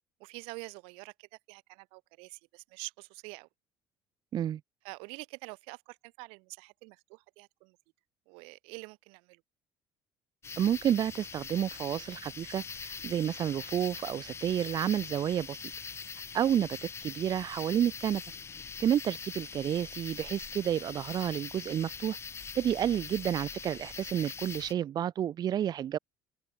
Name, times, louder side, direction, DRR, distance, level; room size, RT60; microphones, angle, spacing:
voice 1, 0.2-3.5 4.8-7.8 8.3-9.4 24.6-24.8, right 30 dB, 90° right, 2.2 m, -47 dB
sound 1, 10.4-24.7, left 6 dB, 30° left, 1.3 m, -43 dB
voice 2, 10.6-15.6 16.3-18.2 18.8-22.2 22.5-26.0, right 10 dB, 45° right, 0.9 m, -30 dB
open air
cardioid pair, 110°, 9 cm